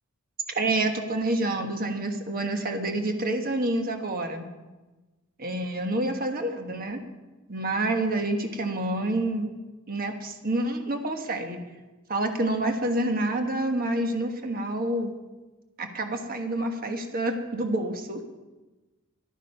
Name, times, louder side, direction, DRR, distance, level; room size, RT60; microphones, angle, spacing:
voice 1, 0.5-4.5 5.4-7.0 7.5-9.5 9.9-11.6 12.1-15.1 15.8-18.2, right 1 dB, 40° right, 5 dB, 1.3 m, -28 dB
13.5 x 12.5 x 5.5 m, 1.2 s
head